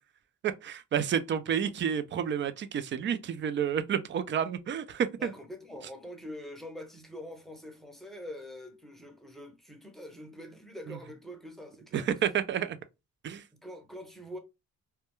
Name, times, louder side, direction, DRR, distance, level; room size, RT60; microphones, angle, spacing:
voice 1, 0.4-5.3 10.9-11.0 11.9-12.8 13.2-13.5, right 8 dB, 40° right, 0.4 m, -30 dB
voice 2, 5.2-12.1 13.5-14.4, left 1 dB, ahead, 0.6 m, -44 dB
2.2 x 2.2 x 2.9 m
cardioid pair, 90°, 30 cm